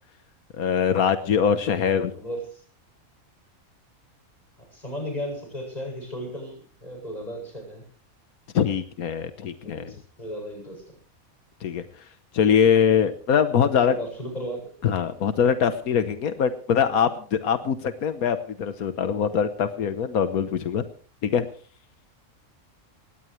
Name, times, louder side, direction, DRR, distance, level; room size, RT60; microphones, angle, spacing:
voice 1, 0.6-2.1 8.5-9.8 11.6-11.8 12.3-13.9 14.8-20.8 21.2-21.5, left 7 dB, 90° left, 10 dB, 1.5 m, -23 dB
voice 2, 2.0-2.6 4.6-7.8 9.6-11.0 12.4-12.7 13.8-14.7, equal, 30° left, 1 dB, 8.1 m, -35 dB
20.0 x 18.0 x 3.3 m, 0.41 s
omnidirectional pair, 1.5 m